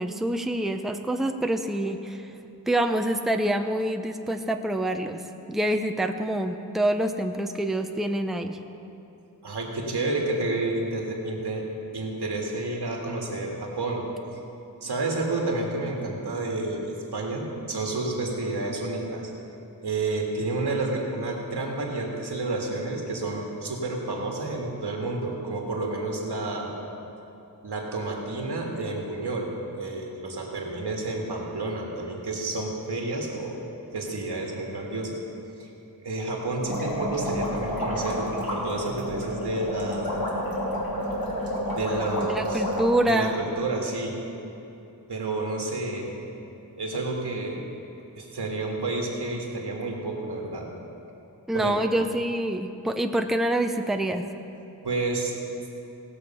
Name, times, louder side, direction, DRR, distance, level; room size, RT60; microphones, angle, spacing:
voice 1, 0.0-2.3 2.7-8.6 42.2-43.4 51.5-54.3, right 1 dB, ahead, 6 dB, 0.6 m, -26 dB
voice 2, 9.4-11.6 11.9-14.1 14.3-14.4 14.8-19.3 19.8-26.7 27.6-33.6 33.9-35.2 35.6-35.7 36.0-40.1 41.7-42.6 43.0-44.2 45.1-46.2 46.8-47.6 48.1-50.7 51.5-51.8 54.8-55.4, right 2 dB, 85° right, -1 dB, 1.9 m, -30 dB
sound 1, 36.7-42.9, equal, 60° left, 2.9 m, -30 dB
18.5 x 6.5 x 5.6 m, 2.9 s
cardioid pair, 50°, 39 cm